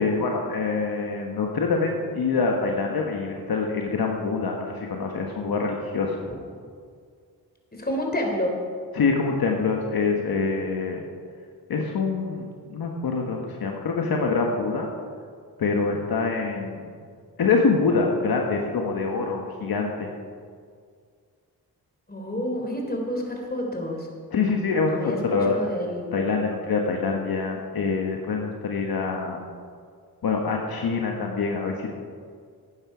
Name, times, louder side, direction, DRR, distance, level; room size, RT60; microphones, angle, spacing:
voice 1, 0.0-6.2 8.9-11.0 11.7-14.9 15.6-16.8 17.4-20.1 24.3-25.6 26.1-29.4 30.2-31.9, left 4 dB, 65° left, 1 dB, 1.3 m, -25 dB
voice 2, 7.8-8.6 22.1-24.1 24.8-25.2 25.5-26.1, equal, 25° left, 1 dB, 3.3 m, -29 dB
13.0 x 9.1 x 4.9 m, 2.1 s
cardioid pair, 50°, 39 cm